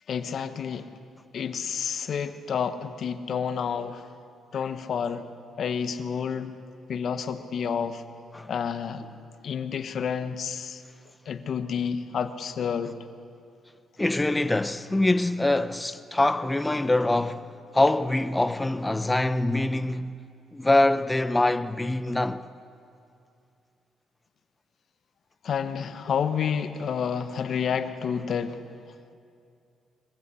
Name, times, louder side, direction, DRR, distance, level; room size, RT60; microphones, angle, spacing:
voice 1, 0.1-0.9 1.3-4.0 4.5-5.3 5.6-6.5 6.9-8.0 8.5-9.1 9.4-10.8 11.3-13.0 25.4-28.6, left 7 dB, 60° left, 1.2 m, -29 dB
voice 2, 14.0-20.2 20.5-22.5, left 2 dB, 15° left, 0.8 m, -24 dB
22.5 x 15.5 x 8.4 m
cardioid pair, 90°, 0 cm